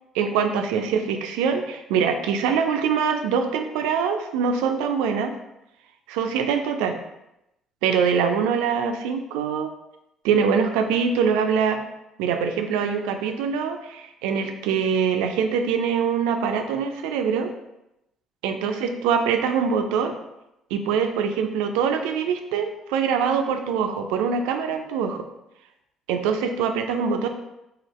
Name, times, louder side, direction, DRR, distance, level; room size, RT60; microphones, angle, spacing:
voice 1, 0.1-5.3 6.1-7.0 7.8-9.7 10.2-11.8 12.2-17.5 18.4-20.1 20.7-25.2 26.1-27.3, right 6 dB, 85° right, 6 dB, 0.3 m, -23 dB
2.8 x 2.8 x 3.0 m, 0.87 s
hypercardioid pair, 60°, 0 cm